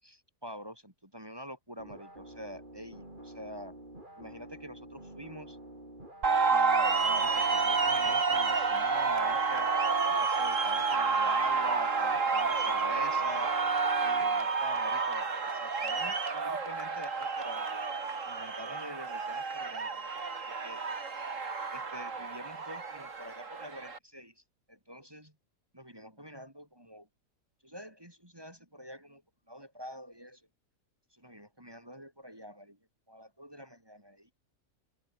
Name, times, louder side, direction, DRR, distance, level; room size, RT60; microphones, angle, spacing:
voice 1, 0.0-3.7 4.2-5.6 6.5-9.7 10.2-13.5 14.0-17.8 18.3-20.1 20.4-20.9 21.7-25.3 25.7-27.1 27.6-29.2 29.5-30.4 31.1-32.8 33.1-34.3, equal, 15° right, 4.5 m, -46 dB
sound 1, 1.8-14.4, right 1 dB, 35° right, 7.8 m, -49 dB
sound 2, 6.2-24.0, right 4 dB, 65° right, 2.7 m, -30 dB
open air
omnidirectional pair, 1.4 m